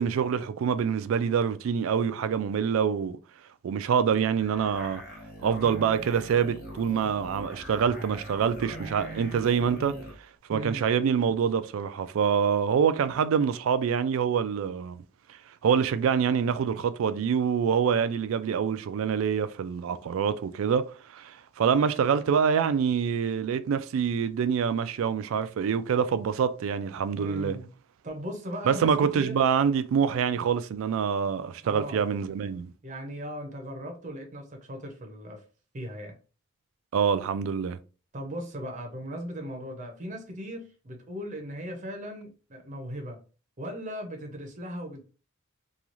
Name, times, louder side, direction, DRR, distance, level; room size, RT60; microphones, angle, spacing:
voice 1, 0.0-3.2 3.6-5.0 5.4-9.9 10.5-15.0 15.6-27.6 28.6-32.7 36.9-37.8, right 7 dB, 75° right, 0.3 m, -26 dB
sound 1, 4.4-10.2, equal, 50° left, 1.0 m, -42 dB
voice 2, 10.5-10.9 27.2-27.7 28.0-29.4 31.6-32.1 32.8-35.4 35.7-36.2 38.1-43.2 43.6-45.0, equal, 35° right, 0.6 m, -38 dB
3.0 x 2.3 x 2.5 m
head